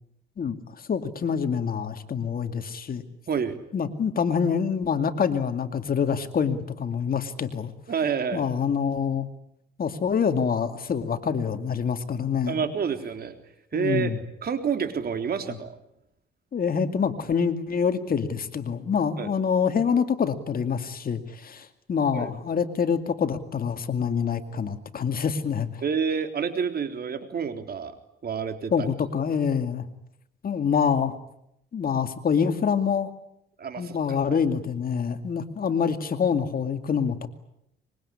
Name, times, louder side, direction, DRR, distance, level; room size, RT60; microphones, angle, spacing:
voice 1, 0.9-3.0 3.7-7.7 8.3-9.3 9.8-12.6 13.7-14.2 16.5-25.8 28.7-29.8 30.4-31.1 31.7-33.1 33.8-37.3, left 6 dB, 45° left, 8 dB, 2.4 m, -26 dB
voice 2, 3.3-3.6 7.9-8.4 12.5-13.4 13.7-14.1 14.4-15.8 19.2-19.3 22.1-22.3 25.8-27.9 28.2-28.9 33.6-34.0 34.3-34.4, right 6 dB, 50° right, 7 dB, 3.6 m, -28 dB
24.5 x 22.5 x 10.0 m, 0.81 s
cardioid pair, 90°, 20 cm